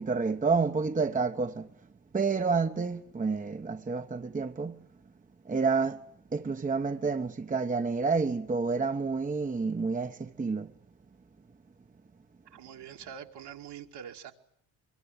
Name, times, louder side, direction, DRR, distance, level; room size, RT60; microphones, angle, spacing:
voice 1, 0.0-1.7 2.1-4.8 5.4-6.0 6.3-10.7, right 4 dB, 20° right, 1.0 m, -29 dB
voice 2, 12.5-14.3, right 8 dB, 65° right, 2.5 m, -44 dB
24.0 x 23.0 x 9.8 m
supercardioid pair, 80°, 43 cm